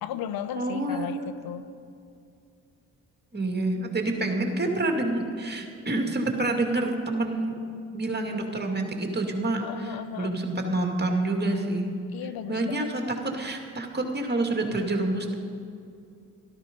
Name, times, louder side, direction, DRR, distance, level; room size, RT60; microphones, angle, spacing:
voice 1, 0.0-1.6 9.6-10.4 12.1-13.1, left 9 dB, 75° left, 12 dB, 0.7 m, -35 dB
voice 2, 0.5-1.3 3.3-7.5 7.9-11.9 12.5-13.0 13.3-15.3, right 2 dB, 25° right, 2 dB, 2.4 m, -28 dB
12.5 x 12.5 x 5.4 m, 2.5 s
supercardioid pair, 50°, 36 cm